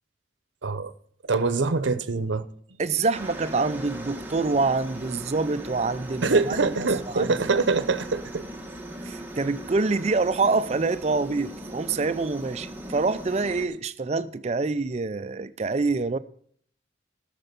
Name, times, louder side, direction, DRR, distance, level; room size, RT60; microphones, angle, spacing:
voice 1, 0.6-0.9 1.2-2.5 6.2-8.4, right 4 dB, 80° right, 0.7 m, -24 dB
voice 2, 2.8-6.6 7.1-7.3 9.0-16.2, right 3 dB, 35° right, 0.4 m, -26 dB
Aircraft, 3.1-13.7, right 1 dB, 10° right, 1.1 m, -39 dB
13.5 x 6.7 x 5.2 m
head